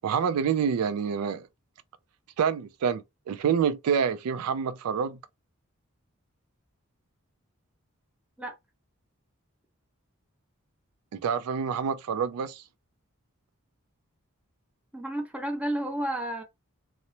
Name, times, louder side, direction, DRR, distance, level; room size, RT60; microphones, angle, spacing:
voice 1, 0.0-1.5 2.4-5.2 11.1-12.6, right 7 dB, 90° right, 0.3 m, -27 dB
voice 2, 14.9-16.4, right 1 dB, 5° right, 0.6 m, -31 dB
2.8 x 2.0 x 2.7 m
head